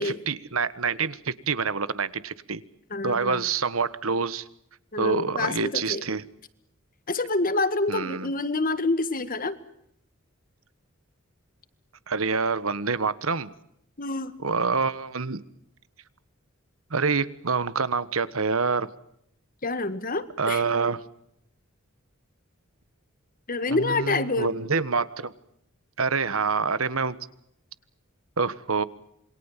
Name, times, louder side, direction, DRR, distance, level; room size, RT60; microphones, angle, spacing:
voice 1, 0.0-2.6 3.0-4.5 5.0-6.2 7.9-8.3 12.1-13.5 14.4-15.4 16.9-18.9 20.4-21.0 23.7-25.3 26.0-27.2 28.4-28.8, right 4 dB, 80° right, 16 dB, 1.4 m, -26 dB
voice 2, 2.9-3.4 4.9-6.0 7.1-9.6 14.0-14.4 19.6-20.6 23.5-24.6, left 2 dB, 40° left, 13 dB, 1.8 m, -27 dB
27.5 x 23.0 x 7.4 m, 0.76 s
head